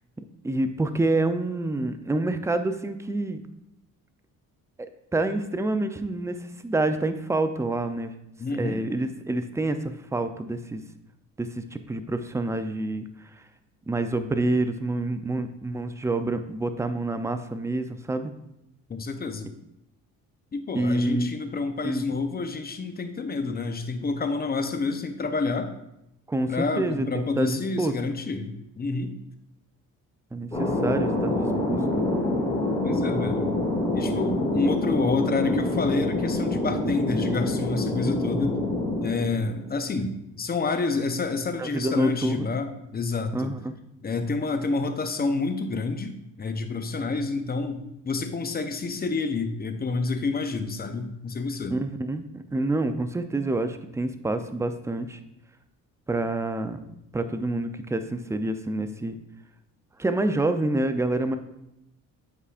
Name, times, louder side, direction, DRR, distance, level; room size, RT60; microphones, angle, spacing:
voice 1, 0.4-3.4 4.8-8.1 8.5-10.8 11.4-13.1 13.4-13.5 13.9-18.3 20.7-21.3 21.8-22.0 26.3-27.9 30.3-31.8 41.6-42.5 43.3-43.7 51.7-55.2 56.1-56.8 57.1-59.2 60.0-61.4, right 2 dB, 10° right, 9 dB, 0.4 m, -27 dB
voice 2, 8.4-8.8 18.9-19.5 20.5-25.7 26.5-29.2 32.8-33.5 33.9-38.6 39.0-42.7 42.9-43.5 44.0-51.7, left 3 dB, 25° left, 7 dB, 0.7 m, -28 dB
Thunder, 30.5-39.8, left 1 dB, 10° left, 2.1 m, -26 dB
8.2 x 4.8 x 2.5 m, 0.84 s
cardioid pair, 80°, 35 cm